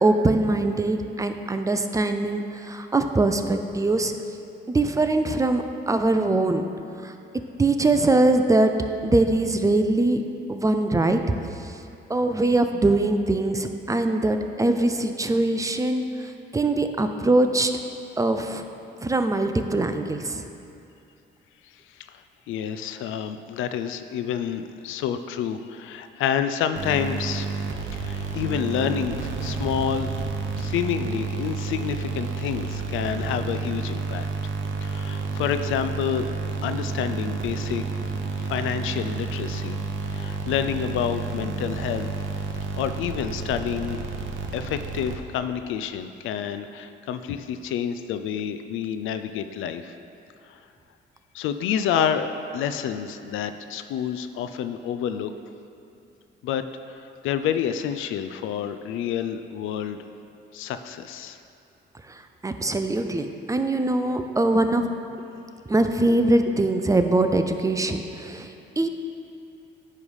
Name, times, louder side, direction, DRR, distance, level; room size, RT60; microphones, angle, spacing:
voice 1, 0.0-4.1 4.7-6.6 7.0-7.1 7.6-8.7 9.0-10.2 10.5-11.2 11.6-11.8 12.1-17.7 18.2-18.6 19.0-20.4 62.1-65.0 65.7-68.9, right 2 dB, 15° right, 7 dB, 0.4 m, -22 dB
voice 2, 22.5-27.6 27.9-30.1 30.6-34.3 34.8-36.3 36.6-37.9 38.4-39.8 40.1-42.1 42.8-44.0 44.5-49.9 50.5-50.6 51.3-55.3 56.4-60.0 60.5-61.4, left 8 dB, 85° left, 10 dB, 0.4 m, -28 dB
sound 1, 26.8-45.5, right 4 dB, 70° right, 0.8 m, -30 dB
9.8 x 3.3 x 5.5 m, 2.6 s
cardioid pair, 90°, 20 cm